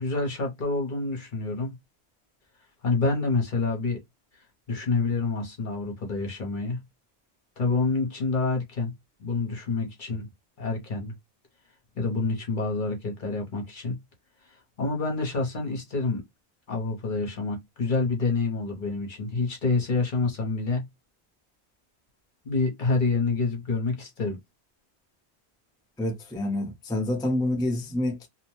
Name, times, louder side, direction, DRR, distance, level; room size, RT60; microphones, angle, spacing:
voice 1, 0.0-1.7 2.8-4.0 4.7-6.8 7.6-8.9 9.2-10.3 10.6-11.1 12.0-14.0 14.8-16.2 16.7-20.8 22.4-24.4, left 3 dB, 50° left, 0.9 m, -27 dB
voice 2, 26.0-28.3, left 1 dB, 5° left, 0.5 m, -27 dB
2.7 x 2.1 x 3.0 m
omnidirectional pair, 1.1 m